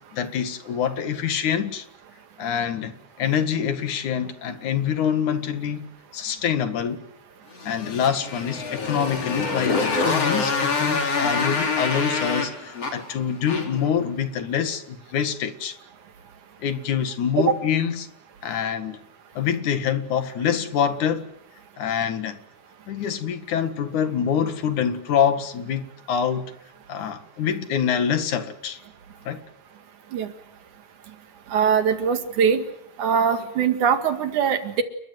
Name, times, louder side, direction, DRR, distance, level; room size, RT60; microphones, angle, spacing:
voice 1, 0.1-1.9 2.4-5.9 6.1-7.0 7.6-15.8 16.6-18.1 18.4-19.0 19.3-21.3 21.8-22.4 22.9-26.5 26.9-28.8 29.3-29.4, left 8 dB, 85° left, 3.3 m, -25 dB
Motorcycle, 7.6-13.9, left 4 dB, 55° left, 4.8 m, -26 dB
voice 2, 31.5-32.6 33.0-34.8, right 7 dB, 85° right, 3.5 m, -21 dB
29.5 x 21.5 x 7.9 m
omnidirectional pair, 3.4 m